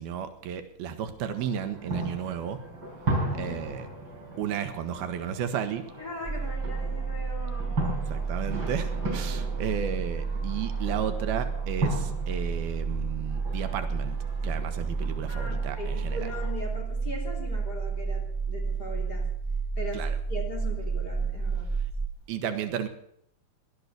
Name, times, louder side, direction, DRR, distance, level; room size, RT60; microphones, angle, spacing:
voice 1, 0.0-2.6 3.3-3.9 4.4-5.9 8.1-14.2 14.4-16.3 19.9-20.2 22.3-22.9, right 8 dB, 85° right, 8 dB, 3.1 m, -33 dB
sound 1, 1.3-16.5, right 1 dB, 30° right, 5.7 m, -37 dB
voice 2, 3.3-3.6 6.0-7.8 15.3-19.3 19.8-21.7 22.4-22.6, left 1 dB, 25° left, -1 dB, 3.5 m, -39 dB
sound 2, 6.2-22.1, right 5 dB, 55° right, 0.3 m, -31 dB
17.5 x 12.0 x 6.9 m, 0.71 s
omnidirectional pair, 4.3 m